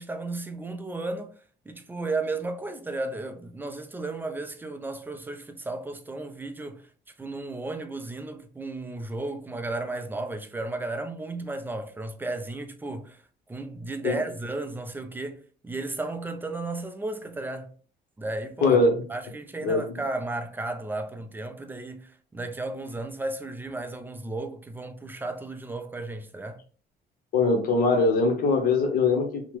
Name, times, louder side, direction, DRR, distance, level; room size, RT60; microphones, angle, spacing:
voice 1, 0.0-1.4 1.7-6.8 7.2-13.2 13.5-17.7 18.2-18.8 19.1-26.6, right 2 dB, 10° right, 0.4 m, -34 dB
voice 2, 18.6-18.9 19.6-19.8 27.3-29.6, left 3 dB, 60° left, 0.8 m, -22 dB
2.9 x 2.1 x 3.1 m
cardioid pair, 110°, 17 cm